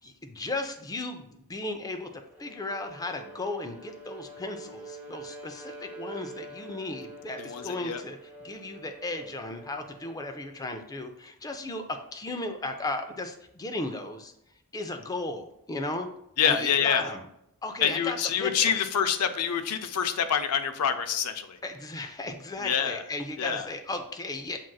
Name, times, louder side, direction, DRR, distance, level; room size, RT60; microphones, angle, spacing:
voice 1, 0.0-2.1 2.4-14.3 14.7-16.1 16.4-17.2 17.6-18.8 21.6-24.6, left 2 dB, 15° left, 6 dB, 0.4 m, -35 dB
Bowed string instrument, 2.3-10.7, right 2 dB, 10° right, 0.8 m, -46 dB
voice 2, 7.4-8.0 16.4-17.0 17.8-21.6 22.6-23.0 23.4-23.7, left 8 dB, 90° left, 9 dB, 0.4 m, -26 dB
7.3 x 2.5 x 2.3 m, 0.79 s
head